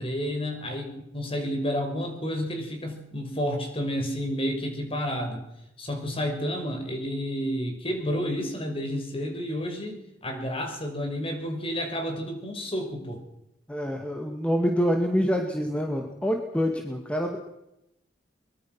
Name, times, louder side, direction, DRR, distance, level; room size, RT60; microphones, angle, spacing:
voice 1, 0.0-5.4 5.8-13.2, equal, 35° left, 4 dB, 5.6 m, -30 dB
voice 2, 13.7-17.4, equal, 5° left, 3 dB, 2.2 m, -26 dB
23.5 x 22.0 x 6.1 m, 0.86 s
head